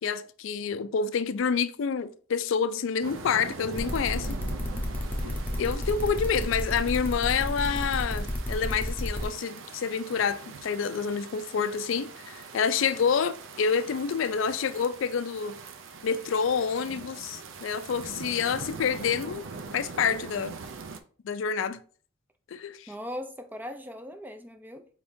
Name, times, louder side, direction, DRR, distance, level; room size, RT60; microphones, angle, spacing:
voice 1, 0.0-4.4 5.2-15.6 16.0-19.5 19.7-20.5 21.2-21.8 22.5-22.9, left 6 dB, 70° left, 0.4 m, -28 dB
sound 1, 3.0-21.0, right 4 dB, 70° right, 0.5 m, -42 dB
sound 2, 3.8-9.2, left 1 dB, 10° left, 0.8 m, -31 dB
voice 2, 22.9-24.9, equal, 10° right, 0.4 m, -39 dB
4.7 x 3.5 x 2.6 m
head